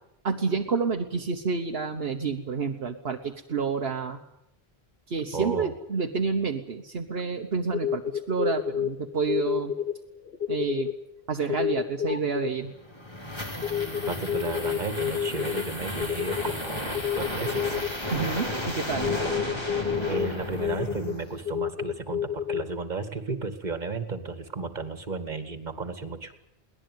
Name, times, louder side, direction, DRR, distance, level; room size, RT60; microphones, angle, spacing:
voice 1, 0.2-4.2 5.1-9.7 10.5-10.9 11.3-12.7 18.1-19.1, right 5 dB, 65° right, 4 dB, 1.4 m, -29 dB
voice 2, 5.3-5.7 14.1-17.8 20.1-26.3, right 3 dB, 45° right, 9 dB, 2.1 m, -33 dB
sound 1, 7.5-9.0 9.3-9.9 10.2-10.9 11.5-12.5 13.6-15.6 16.0-16.5 16.9-18.0 19.0-20.3 20.6-21.1 21.5-22.6, left 9 dB, 65° left, 1.3 m, -29 dB
sound 2, 12.7-21.5, left 1 dB, 25° left, 3.5 m, -33 dB
22.5 x 18.0 x 9.4 m, 0.82 s
omnidirectional pair, 1.1 m